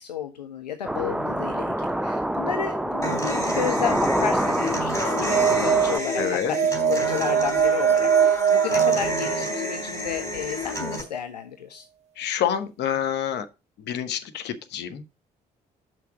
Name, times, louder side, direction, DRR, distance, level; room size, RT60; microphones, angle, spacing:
voice 1, 0.0-11.9, left 8 dB, 85° left, 0.5 m, -32 dB
sound 1, 0.8-6.0, right 1 dB, 5° right, 0.6 m, -26 dB
Human voice / Acoustic guitar, 3.0-11.0, left 1 dB, 15° left, 3.7 m, -30 dB
sound 2, 5.0-9.9, right 8 dB, 30° right, 0.9 m, -23 dB
voice 2, 6.2-6.5 12.2-13.5 13.8-15.0, left 9 dB, 55° left, 0.9 m, -27 dB
6.1 x 5.8 x 4.9 m
figure-of-eight pair, 45°, 21 cm